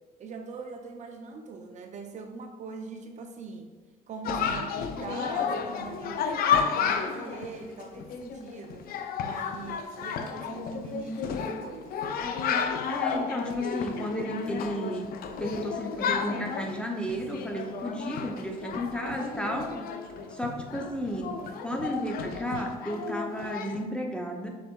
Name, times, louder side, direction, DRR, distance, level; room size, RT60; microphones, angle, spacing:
voice 1, 0.2-3.7 4.1-6.4 6.7-8.9 9.2-12.8 20.1-20.5, right 4 dB, 45° right, 4 dB, 0.5 m, -41 dB
Chatter, 4.2-23.8, left 6 dB, 60° left, 0.4 m, -32 dB
voice 2, 12.9-15.1 15.4-19.7 20.3-21.3 21.6-24.5, equal, 5° left, 1 dB, 0.5 m, -33 dB
6.3 x 3.7 x 2.2 m, 1.3 s
cardioid pair, 110°, 17 cm